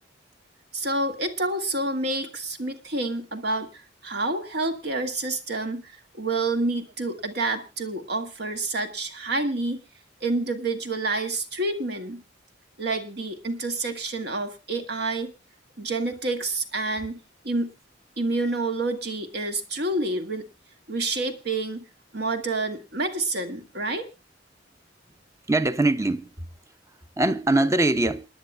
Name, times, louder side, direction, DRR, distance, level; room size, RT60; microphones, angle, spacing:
voice 1, 0.7-9.8 10.2-12.2 12.8-15.3 15.8-17.7 18.2-20.5 20.9-21.9 22.1-24.1, right 2 dB, 65° right, 2.0 m, -28 dB
voice 2, 25.5-26.5 27.2-28.3, right 2 dB, 15° right, 0.8 m, -22 dB
28.5 x 10.5 x 2.3 m
head